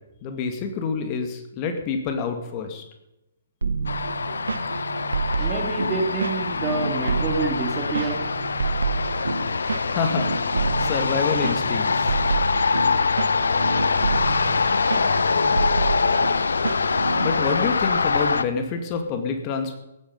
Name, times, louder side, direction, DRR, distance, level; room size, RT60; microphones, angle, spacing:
voice 1, 0.2-2.8 9.9-10.6 10.8-12.1 17.2-19.8, left 5 dB, 30° left, 6 dB, 2.3 m, -27 dB
sound 1, 3.6-17.5, right 4 dB, 75° right, 1.2 m, -29 dB
sound 2, 3.9-18.4, left 4 dB, 75° left, 0.9 m, -24 dB
voice 2, 5.3-8.3 9.6-9.8 14.8-15.2, right 3 dB, 20° right, 4 dB, 2.7 m, -28 dB
16.5 x 12.0 x 5.5 m, 0.91 s
figure-of-eight pair, 130°, 0 cm